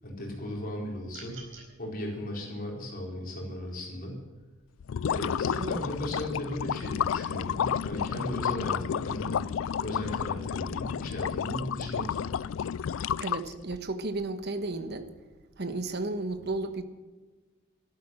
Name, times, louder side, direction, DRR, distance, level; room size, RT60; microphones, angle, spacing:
voice 1, 0.0-1.5 1.8-4.2 5.0-9.4 9.8-12.4, left 1 dB, 45° left, 4.5 m, -36 dB
sound 1, 1.1-1.7, right 4 dB, 80° right, 4.4 m, -46 dB
sound 2, 4.8-13.8, left 8 dB, 75° left, 0.4 m, -31 dB
voice 2, 13.2-15.1 15.6-16.8, right 2 dB, 55° right, 1.3 m, -33 dB
13.0 x 12.0 x 7.6 m
head